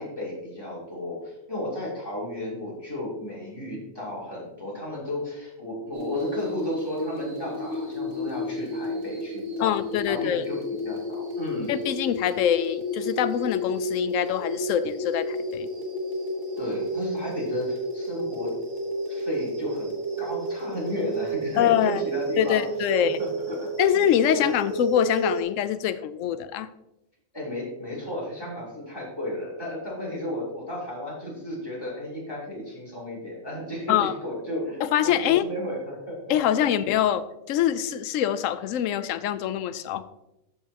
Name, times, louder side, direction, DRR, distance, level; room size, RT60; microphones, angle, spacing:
voice 1, 0.0-9.7 10.1-10.6 10.8-11.7 16.6-18.5 19.1-22.6 23.2-23.7 24.3-24.5 27.3-36.2, left 1 dB, 15° left, -6 dB, 3.4 m, -33 dB
sound 1, 5.9-25.4, right 1 dB, 55° right, 1.7 m, -31 dB
voice 2, 9.6-10.4 11.7-15.7 21.6-22.0 22.4-23.2 23.8-26.7 33.9-34.1 34.8-35.4 36.3-40.0, left 10 dB, 75° left, 14 dB, 0.9 m, -24 dB
13.5 x 5.5 x 2.9 m, 0.87 s
omnidirectional pair, 1.4 m